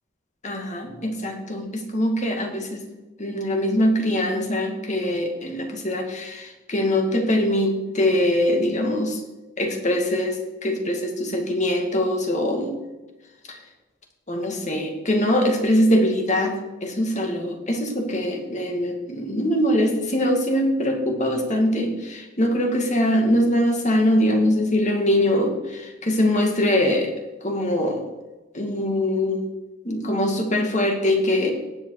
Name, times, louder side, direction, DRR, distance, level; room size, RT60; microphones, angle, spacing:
voice 1, 0.4-2.8 3.2-9.2 9.6-12.7 13.5-13.6 14.3-27.1 27.4-28.1 28.5-29.5 29.8-31.5, left 1 dB, 40° left, 2 dB, 2.2 m, -22 dB
17.5 x 7.9 x 4.9 m, 1.1 s
head